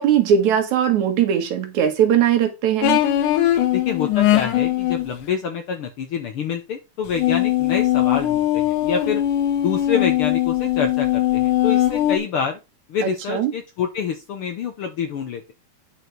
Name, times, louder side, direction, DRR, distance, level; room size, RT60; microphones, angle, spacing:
voice 1, 0.0-3.0 13.3-13.5, right 9 dB, 70° right, 2.7 m, -19 dB
sound 1, 2.8-5.1 7.1-12.2, left 13 dB, 90° left, 2.6 m, -20 dB
voice 2, 3.7-9.2 9.6-12.6 12.9-15.5, left 6 dB, 65° left, 1.4 m, -27 dB
9.5 x 5.2 x 4.6 m
omnidirectional pair, 3.5 m